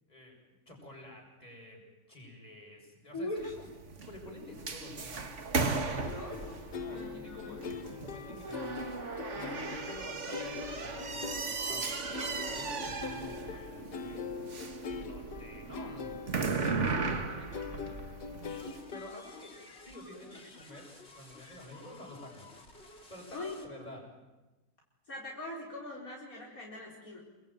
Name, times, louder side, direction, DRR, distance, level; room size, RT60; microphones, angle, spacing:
voice 1, 0.7-11.9 12.5-14.2 14.8-16.2 16.7-18.2 18.9-20.9 21.1-22.5 23.1-24.0, left 1 dB, 25° left, 0 dB, 7.7 m, -50 dB
voice 2, 3.1-3.5 5.8-7.6 12.8-12.9 20.6-20.7 23.3-23.6 25.1-27.2, left 2 dB, 60° left, -3 dB, 4.9 m, -42 dB
sound 1, 3.4-18.8, right 4 dB, 45° right, 2.0 m, -37 dB
sound 2, 6.0-19.6, left 5 dB, 80° left, 1.9 m, -43 dB
sound 3, 18.4-23.7, left 2 dB, 40° left, 3.5 m, -54 dB
28.5 x 23.0 x 9.3 m, 1.1 s
omnidirectional pair, 1.7 m